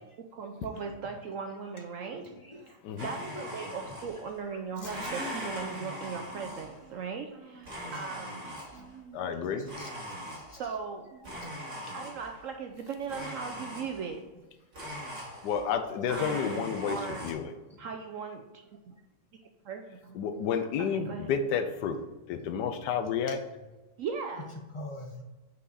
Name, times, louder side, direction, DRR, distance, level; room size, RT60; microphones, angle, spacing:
voice 1, 0.3-9.6 10.6-11.4 11.9-14.2 16.1-17.3 17.8-18.5 19.6-20.2 20.8-21.3 24.0-24.6, right 5 dB, 70° right, 4 dB, 0.8 m, -39 dB
Domestic sounds home sounds, 3.0-4.4 4.8-6.9 7.6-8.9 9.7-10.8 11.2-12.5 13.1-14.2 14.7-15.8 16.1-17.3, equal, 50° right, 2.7 m, -40 dB
voice 2, 3.4-3.7 5.0-5.1 8.8-8.9 9.8-10.6 24.7-25.2, left 1 dB, 35° left, 1 dB, 0.5 m, -44 dB
voice 3, 9.1-9.7 15.4-17.5 20.1-22.0 22.3-23.4, left 7 dB, 85° left, 8 dB, 1.2 m, -31 dB
5.6 x 4.8 x 4.0 m, 1.2 s
omnidirectional pair, 1.8 m